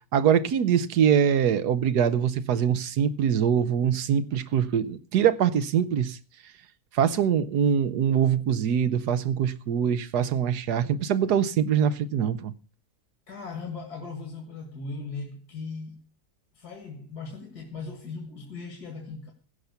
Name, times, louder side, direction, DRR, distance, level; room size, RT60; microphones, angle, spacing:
voice 1, 0.1-6.2 6.9-12.5, right 8 dB, 90° right, 1.4 m, -23 dB
voice 2, 13.3-16.0 16.5-19.3, left 4 dB, 75° left, 2.4 m, -38 dB
16.5 x 5.8 x 8.2 m
omnidirectional pair, 1.7 m